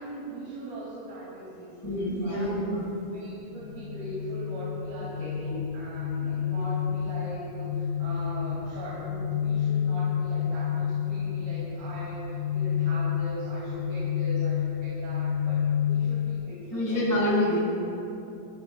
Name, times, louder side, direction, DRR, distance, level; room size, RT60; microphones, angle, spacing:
voice 1, 0.0-2.5 3.1-17.0, equal, 80° right, -8 dB, 4.3 m, -40 dB
voice 2, 1.8-2.8 16.7-17.6, left 1 dB, 5° left, -7 dB, 2.7 m, -26 dB
sound 1, 3.6-16.3, left 8 dB, 70° left, 4.2 m, -29 dB
23.0 x 14.0 x 2.3 m, 2.8 s
omnidirectional pair, 4.3 m